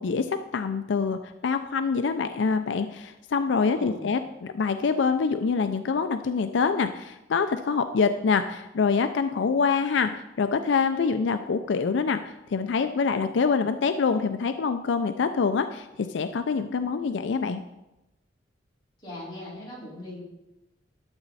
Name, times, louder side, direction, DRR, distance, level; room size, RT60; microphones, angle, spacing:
voice 1, 0.0-17.6, left 5 dB, 75° left, 9 dB, 0.4 m, -25 dB
voice 2, 3.7-4.1 19.0-20.2, left 1 dB, 25° left, -7 dB, 4.3 m, -39 dB
12.0 x 7.1 x 4.1 m, 0.96 s
head